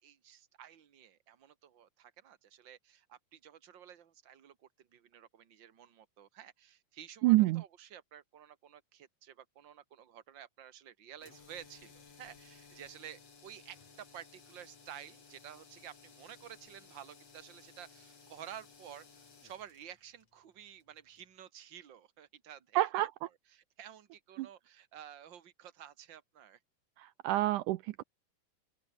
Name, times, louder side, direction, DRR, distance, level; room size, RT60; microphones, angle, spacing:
voice 1, 0.0-23.1 23.5-26.6, right 10 dB, 40° right, 2.2 m, -52 dB
voice 2, 7.2-7.6 22.8-23.1 24.4-24.5 27.0-28.0, right 17 dB, 80° right, 2.0 m, -28 dB
sound 1, 11.2-21.3, left 5 dB, 50° left, 4.9 m, -59 dB
open air
omnidirectional pair, 3.9 m